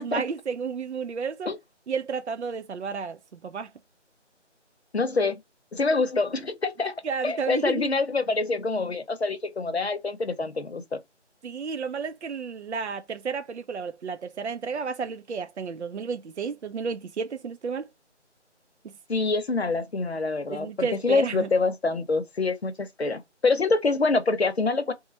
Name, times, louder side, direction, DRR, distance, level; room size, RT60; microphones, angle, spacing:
voice 1, 0.0-1.5 1.9-3.7 7.0-7.9 11.4-17.9 18.8-18.9 20.5-21.5, right 5 dB, 65° right, 0.5 m, -32 dB
voice 2, 4.9-5.4 5.7-11.0 19.1-24.9, left 3 dB, 60° left, 0.8 m, -26 dB
3.1 x 2.2 x 4.2 m
figure-of-eight pair, 175°, 36 cm